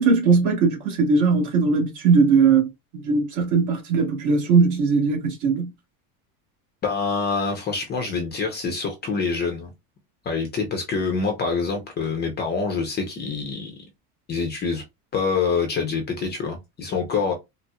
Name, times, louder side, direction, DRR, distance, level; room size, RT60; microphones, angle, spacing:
voice 1, 0.0-2.7 2.9-5.7, right 5 dB, 45° right, 1.3 m, -19 dB
voice 2, 6.8-9.7 10.2-13.8 14.3-14.8 15.1-17.3, left 4 dB, 25° left, 0.6 m, -26 dB
4.1 x 2.0 x 2.3 m
cardioid pair, 155°, 42 cm